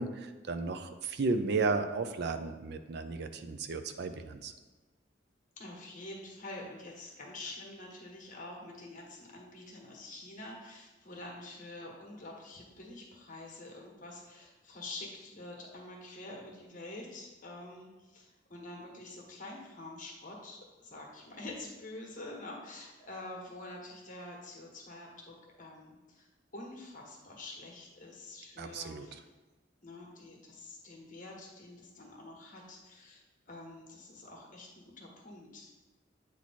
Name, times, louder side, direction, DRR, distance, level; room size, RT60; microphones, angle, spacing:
voice 1, 0.0-4.5 28.6-29.2, right 3 dB, 60° right, 9 dB, 0.5 m, -34 dB
voice 2, 5.6-26.3 26.5-29.2 29.8-35.7, left 2 dB, 45° left, -1 dB, 1.3 m, -47 dB
8.3 x 3.1 x 4.2 m, 1.2 s
head